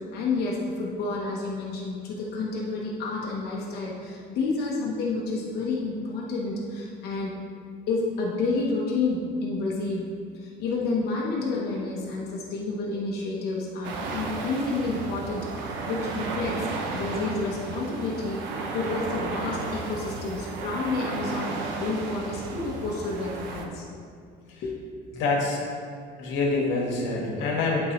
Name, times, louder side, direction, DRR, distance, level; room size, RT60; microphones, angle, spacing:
voice 1, 0.0-7.3 7.9-10.1 10.3-16.7 16.9-18.4 18.7-23.8 24.6-24.7, left 3 dB, 60° left, -3 dB, 1.0 m, -30 dB
sound 1, 13.8-23.7, right 3 dB, 80° right, 0.8 m, -33 dB
voice 2, 25.1-25.6 26.2-27.9, left 3 dB, 80° left, -1 dB, 1.6 m, -26 dB
11.5 x 4.4 x 3.1 m, 2.3 s
cardioid pair, 175°, 19 cm